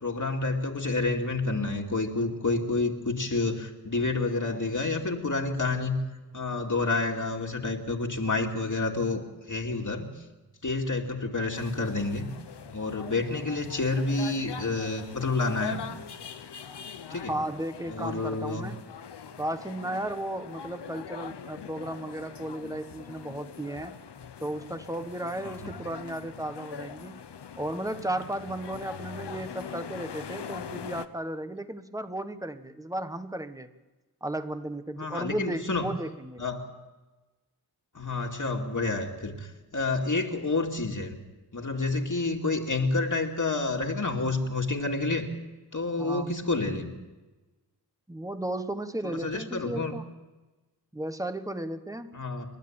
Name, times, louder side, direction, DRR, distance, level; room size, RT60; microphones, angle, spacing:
voice 1, 0.0-6.0 6.3-10.1 10.6-12.3 12.7-15.8 17.1-17.3 17.9-18.6 25.4-25.5 35.0-35.9 36.4-36.7 37.9-41.2 41.5-45.3 45.7-46.9 49.0-49.9 52.1-52.5, left 3 dB, 50° left, 1 dB, 2.5 m, -29 dB
sound 1, 11.5-31.1, left 7 dB, 85° left, 1.0 m, -42 dB
voice 2, 17.1-18.9 19.4-23.9 24.4-27.2 27.6-33.7 34.2-36.4 46.0-46.4 48.1-50.1 50.9-52.2, right 1 dB, 10° right, 9 dB, 1.4 m, -34 dB
28.5 x 12.5 x 8.9 m, 1.2 s
wide cardioid pair, 75°, 40 cm